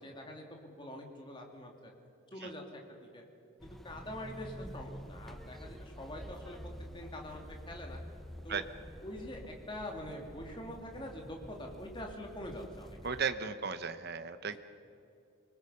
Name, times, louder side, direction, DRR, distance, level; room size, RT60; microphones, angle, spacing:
voice 1, 0.0-1.9 2.3-3.2 3.6-8.0 8.4-8.6 9.0-13.0 14.5-14.6, left 1 dB, 25° left, 1 dB, 2.6 m, -45 dB
sound 1, 3.6-13.3, equal, ahead, 0.8 m, -48 dB
voice 2, 13.0-14.6, right 6 dB, 50° right, 10 dB, 0.9 m, -35 dB
26.5 x 20.0 x 5.6 m, 2.6 s
head